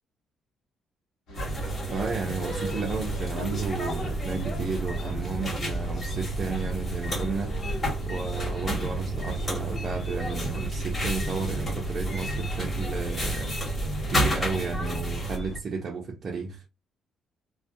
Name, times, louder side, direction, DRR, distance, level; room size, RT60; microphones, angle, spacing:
sound 1, 1.3-11.6, equal, 75° left, 1.2 m, -51 dB
sound 2, 1.3-15.4, right 1 dB, 30° left, 1.2 m, -31 dB
voice 1, 1.9-7.8 8.1-16.6, right 4 dB, 40° right, 0.4 m, -33 dB
sound 3, 2.9-15.6, equal, 50° left, 0.4 m, -37 dB
2.5 x 2.0 x 2.4 m
cardioid pair, 130°, 0 cm